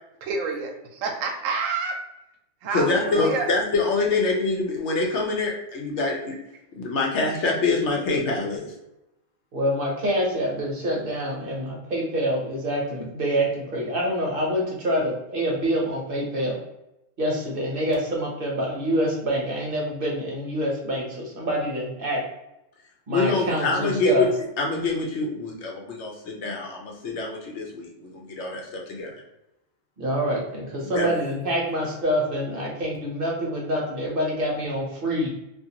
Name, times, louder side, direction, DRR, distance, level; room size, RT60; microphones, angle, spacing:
voice 1, 0.2-2.0 2.6-3.5, right 4 dB, 85° right, 4 dB, 1.0 m, -28 dB
voice 2, 2.7-6.3 6.8-8.7 23.1-24.3 24.6-29.1 30.8-31.1, left 3 dB, 65° left, 0 dB, 0.9 m, -25 dB
voice 3, 9.5-16.6 17.2-22.2 23.1-24.3 30.0-35.3, equal, 50° right, -3 dB, 0.9 m, -26 dB
2.6 x 2.4 x 2.8 m, 0.89 s
omnidirectional pair, 1.3 m